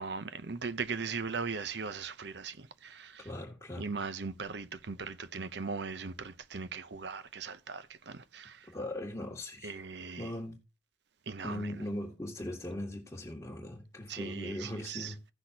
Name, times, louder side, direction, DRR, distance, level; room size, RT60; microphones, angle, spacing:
voice 1, 0.0-3.3 3.8-8.7 9.6-10.3 11.3-11.7 14.1-15.1, right 5 dB, 75° right, 0.7 m, -39 dB
voice 2, 3.2-3.9 8.7-9.8 10.2-10.6 11.4-15.2, left 1 dB, 20° left, 1.6 m, -39 dB
16.5 x 6.0 x 2.8 m
head